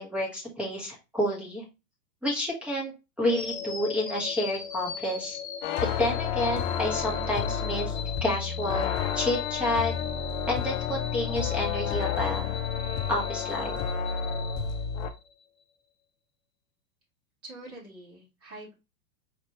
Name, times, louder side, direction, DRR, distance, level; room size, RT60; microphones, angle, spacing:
voice 1, 0.0-1.6 2.2-2.9 3.2-5.4 6.0-9.9 10.5-12.6 13.1-13.7, left 1 dB, ahead, -3 dB, 1.0 m, -29 dB
sound 1, 3.3-15.4, left 7 dB, 20° left, 1.7 m, -39 dB
sound 2, 5.6-15.1, left 7 dB, 45° left, 0.6 m, -31 dB
voice 2, 17.4-18.7, right 2 dB, 30° right, -5 dB, 2.4 m, -45 dB
4.4 x 2.9 x 2.8 m, 0.27 s
hypercardioid pair, 120°, 49 cm